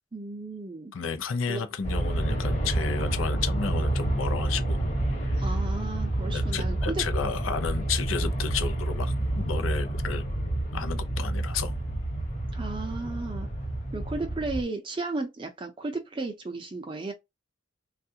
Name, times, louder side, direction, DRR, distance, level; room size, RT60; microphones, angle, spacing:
voice 1, 0.1-0.9 1.5-1.6 5.3-7.0 12.5-13.5 13.9-17.1, right 3 dB, 25° right, 0.5 m, -34 dB
voice 2, 0.9-4.8 6.3-10.3 10.7-11.7, left 5 dB, 90° left, 0.6 m, -32 dB
Aircraft, 1.8-14.6, right 1 dB, 35° left, 1.0 m, -29 dB
3.4 x 2.4 x 2.7 m
head